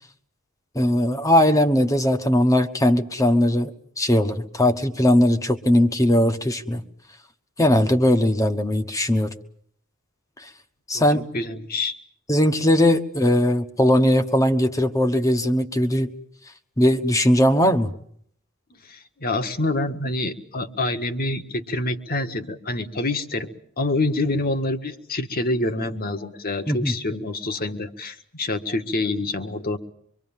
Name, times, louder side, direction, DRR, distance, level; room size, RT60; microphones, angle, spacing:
voice 1, 0.7-6.8 7.6-9.3 10.9-11.3 12.3-16.1 16.8-17.9 26.7-27.0, left 1 dB, 15° left, 8 dB, 1.1 m, -19 dB
voice 2, 11.3-11.9 18.8-23.5 23.8-29.8, left 2 dB, 45° left, 7 dB, 1.6 m, -26 dB
25.0 x 23.5 x 7.3 m, 0.65 s
head